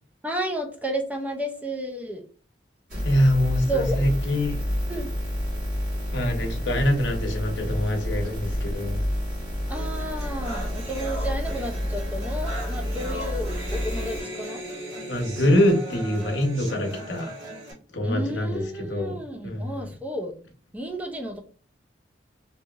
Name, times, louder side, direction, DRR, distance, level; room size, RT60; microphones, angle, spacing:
voice 1, 0.2-2.2 3.7-4.0 4.9-5.1 9.7-14.6 18.0-20.4 20.7-21.4, right 1 dB, 10° right, 4 dB, 0.3 m, -32 dB
sound 1, 2.9-14.2, equal, 45° right, 1.3 m, -29 dB
voice 2, 3.0-4.6 6.1-9.0 15.1-17.3 17.9-18.6 18.9-19.1 19.4-19.9, left 1 dB, 80° left, 3 dB, 0.7 m, -24 dB
sound 2, 9.7-17.7, right 1 dB, 85° right, 1.3 m, -37 dB
2.8 x 2.6 x 2.3 m, 0.41 s
head